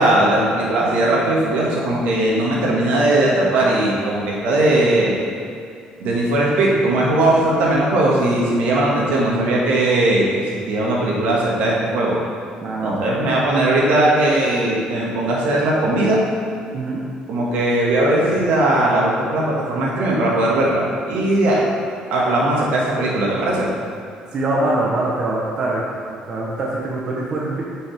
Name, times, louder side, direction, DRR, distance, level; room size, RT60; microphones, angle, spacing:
voice 1, 0.0-5.1 6.0-10.2 10.7-12.2 12.8-16.2 17.3-21.6 22.1-23.7, right 1 dB, 80° right, -4 dB, 1.8 m, -18 dB
voice 2, 12.6-13.0 16.7-17.0 24.3-25.8 26.3-27.6, right 2 dB, 35° right, -4 dB, 0.9 m, -23 dB
9.1 x 5.4 x 3.5 m, 2.2 s
cardioid pair, 175°, 3 cm